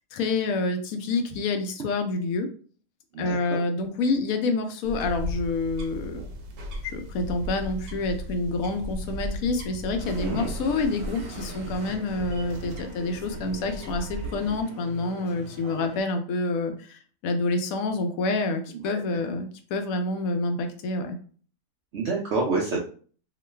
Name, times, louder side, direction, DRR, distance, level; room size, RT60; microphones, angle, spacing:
voice 1, 0.1-2.5 3.2-6.2 6.8-21.2, left 3 dB, 75° left, 6 dB, 1.0 m, -28 dB
voice 2, 3.1-3.6 10.2-10.5 18.8-19.0 21.9-22.8, right 3 dB, 60° right, -3 dB, 0.8 m, -28 dB
sound 1, 4.8-14.6, right 1 dB, 85° right, 1.2 m, -36 dB
sound 2, 10.0-16.0, equal, 45° right, 1.2 m, -42 dB
3.0 x 2.4 x 3.2 m, 0.43 s
omnidirectional pair, 1.6 m